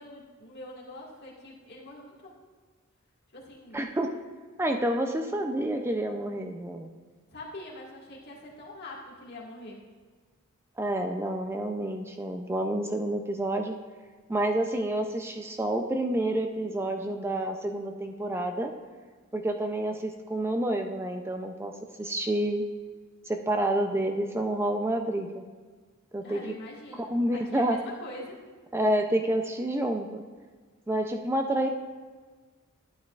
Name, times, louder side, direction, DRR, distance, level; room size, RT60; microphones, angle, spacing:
voice 1, 0.0-2.3 3.3-3.8 7.3-9.8 26.2-28.4, left 1 dB, 50° left, -4 dB, 1.9 m, -43 dB
voice 2, 3.7-4.1 4.6-6.9 10.8-13.7 14.3-18.7 19.3-21.7 22.0-22.6 23.3-25.4 26.1-26.5 27.0-27.8 28.7-30.2 30.9-31.7, right 1 dB, 10° right, 4 dB, 0.4 m, -29 dB
12.5 x 8.8 x 2.4 m, 1.5 s
head